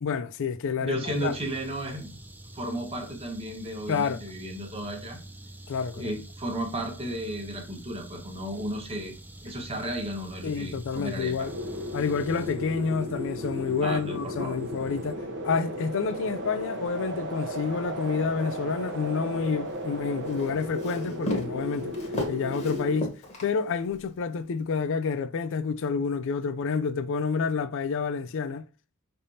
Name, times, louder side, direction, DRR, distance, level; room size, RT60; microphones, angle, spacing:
voice 1, 0.0-1.4 3.9-4.2 5.7-6.1 10.4-11.5 11.9-15.2 15.4-22.0 22.3-23.1 23.4-28.6, left 5 dB, 60° left, 0.4 m, -29 dB
voice 2, 0.8-2.2 2.5-5.2 5.9-11.5 13.8-14.6, right 1 dB, 25° right, 1.2 m, -34 dB
sound 1, 1.0-15.1, right 1 dB, 10° right, 0.4 m, -45 dB
sound 2, 11.4-23.0, equal, 55° right, 0.8 m, -35 dB
Walk footsteps, 19.7-24.0, left 1 dB, 30° left, 1.2 m, -35 dB
5.3 x 3.4 x 2.7 m
head